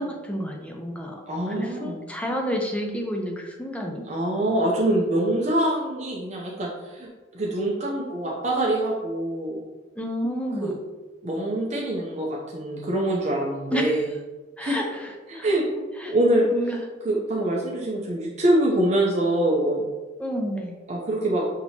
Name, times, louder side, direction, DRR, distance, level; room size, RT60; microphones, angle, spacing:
voice 1, 0.0-1.2 1.5-4.0 10.0-10.7 13.7-14.0 14.6-15.5 16.0-16.1 16.5-16.8 20.2-20.7, equal, 5° left, 1 dB, 0.4 m, -30 dB
voice 2, 1.3-2.0 4.1-9.6 10.6-10.8 11.2-14.0 14.6-14.8 15.3-15.6 16.0-16.5 17.0-19.9 20.9-21.4, right 1 dB, 40° right, -3 dB, 0.6 m, -24 dB
5.9 x 2.9 x 2.7 m, 1.3 s
head